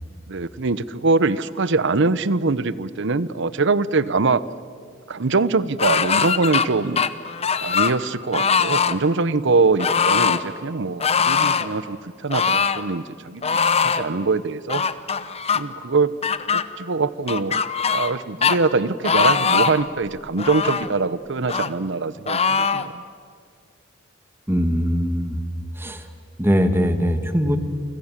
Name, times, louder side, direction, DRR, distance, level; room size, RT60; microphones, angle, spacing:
voice 1, 0.3-4.5 5.1-7.1 7.6-14.8 15.5-16.1 16.5-17.6 17.9-23.0, right 3 dB, 60° right, 17 dB, 0.8 m, -23 dB
sound 1, 5.8-6.7 7.0-8.0 8.3-9.0 9.8-10.4 11.0-11.7 12.3-12.8 13.4-14.0 14.7-15.6 16.2-16.6 17.3-18.2 18.4-18.6 19.0-19.8 20.4-20.9 21.5-21.7 22.3-22.9, left 6 dB, 30° left, 0.9 m, -21 dB
voice 2, 24.5-25.4 25.8-26.0 26.4-27.6, equal, 10° right, 8 dB, 1.7 m, -21 dB
29.5 x 25.5 x 7.4 m, 2.1 s
head